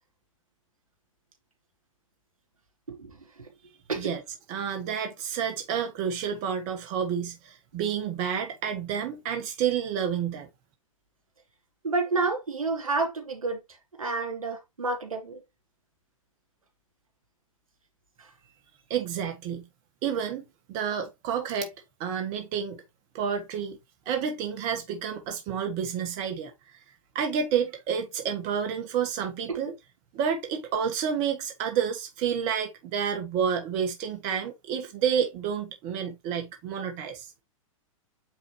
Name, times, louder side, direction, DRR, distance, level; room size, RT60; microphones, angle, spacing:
voice 1, 2.9-3.5 3.9-4.1 11.8-13.6 14.0-15.4 18.2-18.3 29.5-29.6, right 3 dB, 90° right, 2.9 m, -30 dB
voice 2, 4.5-10.5 18.9-19.7 20.0-21.7 22.0-22.8 23.1-23.8 24.0-26.5 27.1-29.7 30.1-37.3, right 7 dB, 40° right, 1.5 m, -29 dB
8.9 x 4.1 x 3.1 m
hypercardioid pair, 110°, 17 cm